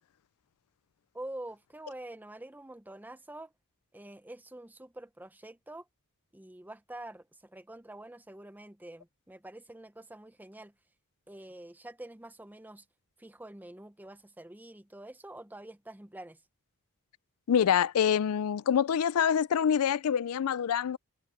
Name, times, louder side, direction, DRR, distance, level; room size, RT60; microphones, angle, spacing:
voice 1, 1.1-3.5 3.9-5.9 6.3-10.7 11.3-12.9 13.2-16.4, right 1 dB, 10° right, 0.6 m, -46 dB
voice 2, 17.5-21.0, left 8 dB, 80° left, 0.4 m, -26 dB
head